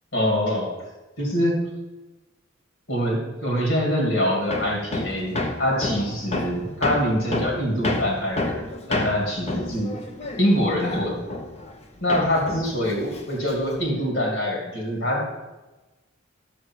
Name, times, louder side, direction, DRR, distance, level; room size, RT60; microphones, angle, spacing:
voice 1, 0.1-0.7 1.2-1.6 2.9-8.6 8.9-9.9 10.4-11.2 12.0-15.3, equal, 70° left, -1 dB, 2.6 m, -24 dB
Hammer, 4.5-11.8 12.1-13.9, left 2 dB, 35° left, 0.9 m, -29 dB
12.0 x 6.6 x 4.6 m, 1.1 s
head